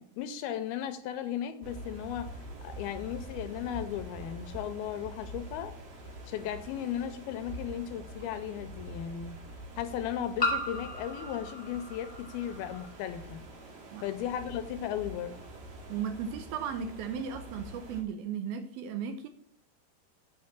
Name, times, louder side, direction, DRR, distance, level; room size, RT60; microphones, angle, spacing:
voice 1, 0.0-5.7 6.3-9.4 9.8-13.4 14.0-15.4, left 10 dB, 80° left, 10 dB, 2.4 m, -36 dB
sound 1, 1.6-18.0, right 1 dB, 60° right, 3.6 m, -45 dB
sound 2, 6.5-6.6 8.2-8.3 10.4-12.9, left 1 dB, 5° left, 2.4 m, -35 dB
voice 2, 15.9-19.3, right 7 dB, 75° right, 9 dB, 2.4 m, -36 dB
7.6 x 6.6 x 7.3 m, 0.65 s
omnidirectional pair, 4.7 m